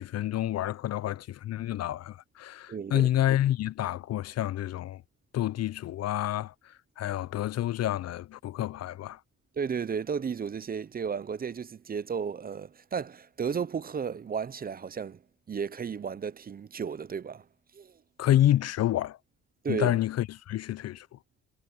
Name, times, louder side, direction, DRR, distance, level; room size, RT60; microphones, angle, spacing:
voice 1, 0.0-5.0 5.3-9.2 18.2-19.2 19.7-21.2, left 13 dB, 55° left, 0.5 m, -28 dB
voice 2, 2.7-3.1 9.6-15.2 15.5-17.4 17.7-17.9 19.6-19.9, right 6 dB, 30° right, 0.6 m, -33 dB
cardioid pair, 90°, 30 cm